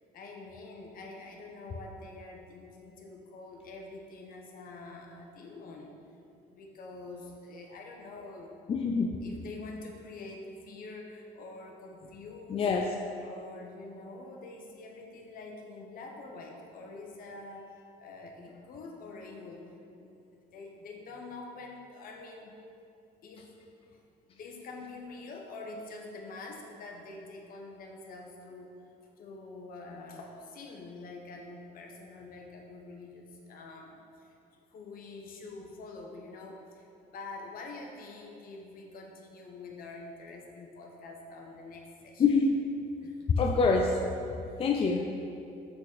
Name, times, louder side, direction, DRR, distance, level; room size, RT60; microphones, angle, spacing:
voice 1, 0.1-5.9 6.5-8.5 9.2-12.7 13.2-19.6 20.0-22.6 23.2-23.5 23.9-24.0 24.3-28.8 29.2-34.4 34.7-42.4 43.0-43.2 44.5-44.6, left 3 dB, 60° left, 1 dB, 1.1 m, -46 dB
voice 2, 8.7-9.2 12.5-12.9 42.2-42.6 43.4-44.0 44.3-45.1, left 4 dB, 35° left, 2 dB, 0.5 m, -26 dB
6.2 x 6.2 x 4.1 m, 2.6 s
cardioid pair, 110°, 17 cm